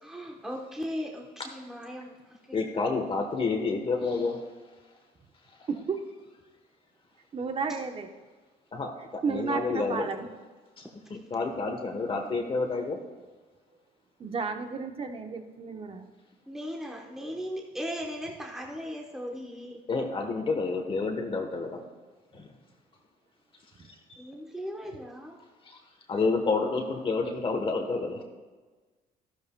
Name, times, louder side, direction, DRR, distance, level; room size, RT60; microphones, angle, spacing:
voice 1, 0.0-2.6 7.7-7.8 16.5-19.8 24.2-25.4, equal, 5° right, 0 dB, 1.1 m, -38 dB
voice 2, 2.5-4.4 5.5-5.6 8.7-10.1 10.8-13.0 19.9-21.8 22.3-22.5 23.8-24.0 25.6-25.8 26.1-28.2, left 3 dB, 30° left, 3 dB, 1.2 m, -29 dB
voice 3, 5.7-6.0 7.3-8.1 9.2-10.3 14.2-16.1 23.8-23.9, right 5 dB, 35° right, 5 dB, 1.1 m, -32 dB
13.0 x 12.5 x 2.3 m, 1.3 s
cardioid pair, 110°, 17 cm